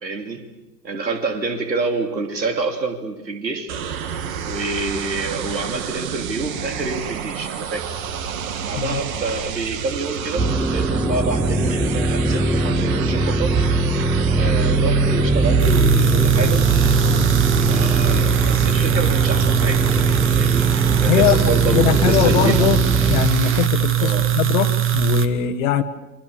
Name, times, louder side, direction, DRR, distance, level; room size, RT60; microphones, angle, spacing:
voice 1, 0.0-0.5 0.8-3.7 4.4-7.8 8.6-13.5 14.4-16.7 17.7-20.1 20.4-22.6 24.0-24.3, right 3 dB, 85° right, 5 dB, 3.1 m, -27 dB
sound 1, 3.7-23.7, right 7 dB, 55° right, 2.4 m, -30 dB
sound 2, 10.4-23.3, right 2 dB, ahead, 1.4 m, -20 dB
sound 3, 15.6-25.3, right 11 dB, 25° right, 1.8 m, -20 dB
voice 2, 21.1-22.8 23.1-25.8, left 12 dB, 50° left, 8 dB, 1.5 m, -21 dB
29.5 x 25.0 x 7.2 m, 1.1 s
figure-of-eight pair, 95°, 50 cm